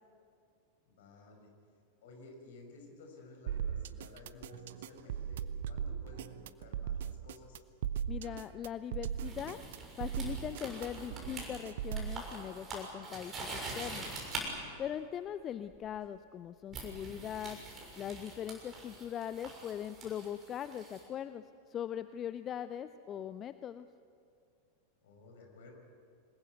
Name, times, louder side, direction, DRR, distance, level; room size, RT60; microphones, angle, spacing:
voice 1, 0.9-1.5 2.0-7.6 25.0-25.7, left 3 dB, 55° left, 3 dB, 5.5 m, -54 dB
sound 1, 3.5-12.2, right 9 dB, 55° right, 0.7 m, -38 dB
voice 2, 8.1-9.6 10.0-13.5 13.8-14.1 14.8-17.6 18.0-23.9, left 9 dB, 30° left, 13 dB, 0.6 m, -40 dB
sound 2, 9.2-14.4 15.7-15.9 16.7-21.0, right 3 dB, 25° right, 6.8 m, -44 dB
27.0 x 21.0 x 8.3 m, 2.3 s
figure-of-eight pair, 90°, 0 cm